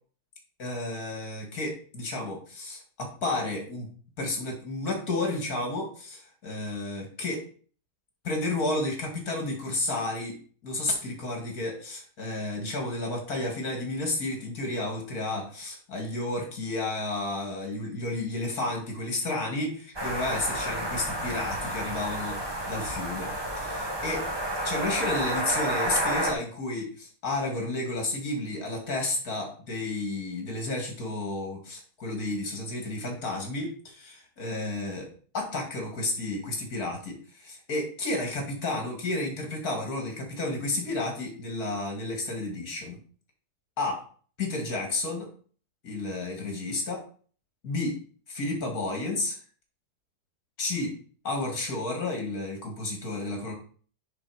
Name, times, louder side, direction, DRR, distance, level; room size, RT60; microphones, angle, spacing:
voice 1, 0.6-3.9 4.2-7.4 8.2-23.3 23.6-24.3 24.6-43.0 43.8-44.0 44.4-45.3 45.8-47.0 47.6-48.0 48.3-49.4 50.6-51.0 51.2-53.5, left 2 dB, 65° left, 2 dB, 2.7 m, -32 dB
sound 1, 20.0-26.3, right 1 dB, 15° right, 1.4 m, -30 dB
9.7 x 4.2 x 5.0 m, 0.44 s
omnidirectional pair, 1.7 m